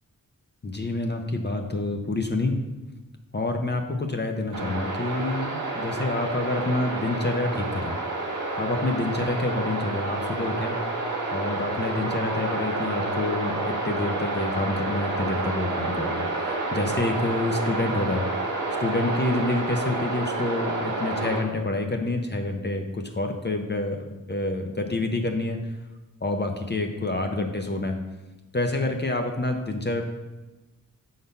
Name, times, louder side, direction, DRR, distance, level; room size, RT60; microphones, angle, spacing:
voice 1, 0.6-2.6 3.3-8.0 8.6-10.7 11.3-18.5 18.8-25.7 26.2-28.0 28.5-30.0, left 2 dB, 30° left, 3 dB, 0.6 m, -28 dB
sound 1, 4.5-21.4, right 2 dB, 60° right, 1.6 m, -29 dB
6.8 x 3.9 x 5.3 m, 1.1 s
wide cardioid pair, 115°, 35 cm